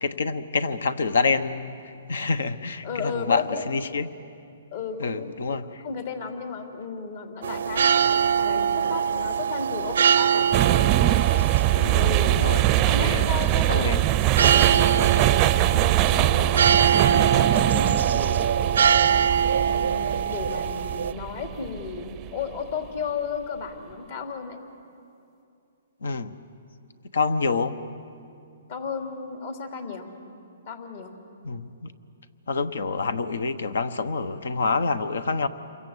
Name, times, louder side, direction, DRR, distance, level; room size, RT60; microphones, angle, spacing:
voice 1, 0.0-4.1 5.0-5.8 11.7-12.6 13.0-13.3 13.7-14.0 26.0-26.3 27.1-27.7 31.4-31.9 32.5-35.5, left 4 dB, 80° left, 13 dB, 1.3 m, -27 dB
voice 2, 2.8-3.6 4.7-5.6 5.8-10.5 11.9-12.4 12.7-14.2 14.7-18.4 19.5-24.6 28.7-30.1 30.7-31.1, left 5 dB, 60° left, 3 dB, 3.1 m, -34 dB
sound 1, 7.4-21.1, right 7 dB, 70° right, 0.6 m, -24 dB
sound 2, 10.5-22.6, right 15 dB, 25° right, 0.5 m, -23 dB
28.5 x 24.0 x 8.3 m, 2.5 s
hypercardioid pair, 150°, 0 cm